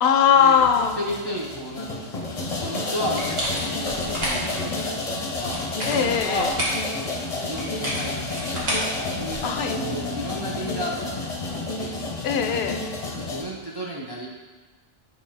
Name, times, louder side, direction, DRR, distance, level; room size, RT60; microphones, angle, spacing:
voice 1, 0.0-0.9 5.9-6.5 9.4-9.8 12.2-12.8, left 7 dB, 75° left, 6 dB, 0.8 m, -20 dB
sound 1, 0.6-13.4, left 2 dB, 40° left, 0.7 m, -30 dB
voice 2, 0.9-5.0 5.4-5.6 5.9-6.5 6.9-9.4 9.8-12.0 13.1-14.3, equal, 30° right, -4 dB, 0.5 m, -33 dB
sound 2, 3.1-4.6 5.4-6.8 7.6-9.6, equal, 65° right, 1.7 m, -30 dB
8.5 x 3.0 x 4.1 m, 1.3 s
omnidirectional pair, 1.1 m